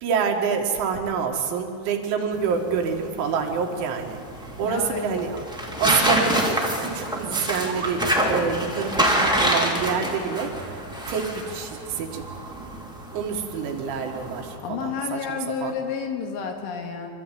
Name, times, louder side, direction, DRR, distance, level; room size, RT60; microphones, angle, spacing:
voice 1, 0.0-4.2 4.6-5.4 5.8-8.0 8.3-10.8 11.1-12.2 13.1-15.2 15.6-15.7, right 6 dB, 90° right, 2 dB, 4.4 m, -27 dB
sound 1, 2.3-14.6, right 1 dB, 5° right, 0.4 m, -27 dB
voice 2, 4.6-5.2 14.6-17.1, left 6 dB, 90° left, 3 dB, 4.5 m, -30 dB
sound 2, 7.4-8.1, right 8 dB, 60° right, 2.2 m, -36 dB
26.0 x 13.5 x 9.2 m, 2.5 s
omnidirectional pair, 5.4 m